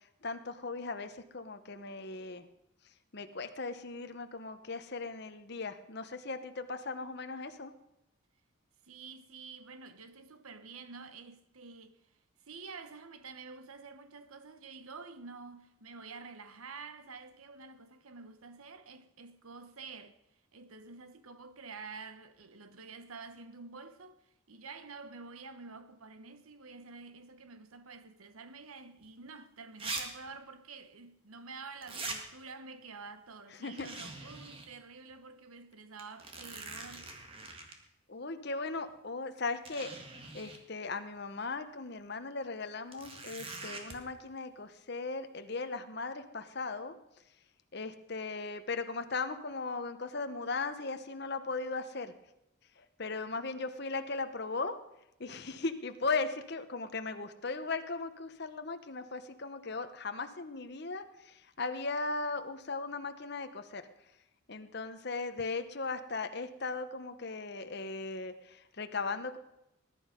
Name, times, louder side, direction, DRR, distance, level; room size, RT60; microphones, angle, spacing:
voice 1, 0.2-2.4 3.1-7.7 33.6-33.9 38.1-39.9 40.3-46.9 47.7-52.1 53.0-54.8 55.2-63.8 64.5-69.4, left 3 dB, 50° left, 1.0 m, -37 dB
voice 2, 8.8-12.0 12.4-20.2 20.5-37.2, right 4 dB, 85° right, 1.1 m, -49 dB
sound 1, 29.0-29.1 29.8-30.0 30.3-30.4 31.8-32.2 33.8-34.7 35.1-35.2 36.0-37.7 38.9-39.0 39.6-40.6 42.9-44.0, right 3 dB, 25° right, 1.9 m, -42 dB
20.0 x 11.0 x 5.2 m
head